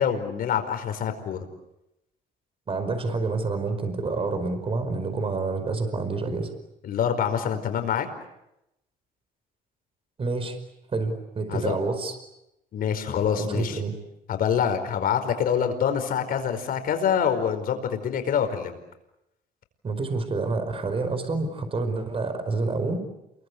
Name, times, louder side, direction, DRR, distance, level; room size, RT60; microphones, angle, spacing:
voice 1, 0.0-1.5 6.8-8.1 11.5-11.8 12.7-13.8 14.3-18.8, left 8 dB, 60° left, 8 dB, 4.9 m, -25 dB
voice 2, 2.7-6.5 10.2-10.6 10.9-12.1 13.4-13.9 19.8-23.0, right 3 dB, 35° right, 8 dB, 5.0 m, -28 dB
29.0 x 23.5 x 8.4 m, 0.85 s
cardioid pair, 110°, 17 cm